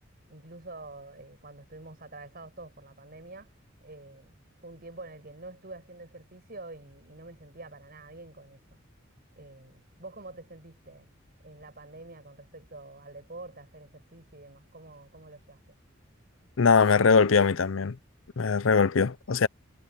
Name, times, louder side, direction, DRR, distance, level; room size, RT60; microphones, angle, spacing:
voice 1, 0.3-3.5 3.8-4.3 4.6-8.8 9.4-11.1 11.4-15.6, right 2 dB, 50° right, 7.8 m, -47 dB
voice 2, 16.6-18.0 18.4-19.5, left 5 dB, 75° left, 0.6 m, -21 dB
head